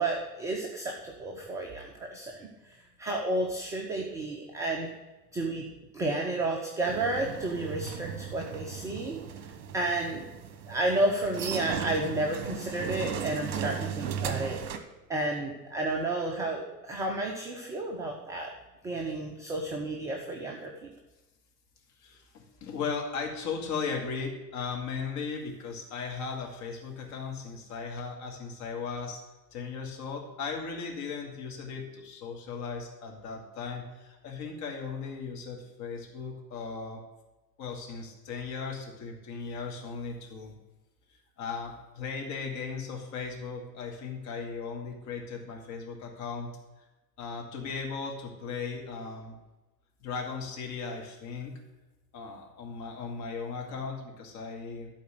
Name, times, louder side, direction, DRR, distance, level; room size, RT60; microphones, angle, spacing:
voice 1, 0.0-4.9 5.3-5.7 5.9-9.2 9.7-10.2 10.7-14.6 15.1-18.5 18.8-20.9, right 2 dB, 5° right, 0 dB, 0.4 m, -31 dB
sound 1, 6.9-14.8, right 8 dB, 50° right, 1.2 m, -37 dB
voice 2, 22.0-29.2 29.5-37.0 37.6-40.5 41.4-46.5 47.2-49.4 50.0-51.6 52.1-54.9, left 5 dB, 35° left, 1 dB, 2.3 m, -37 dB
11.5 x 4.3 x 7.8 m, 1.1 s
figure-of-eight pair, 95°, 50 cm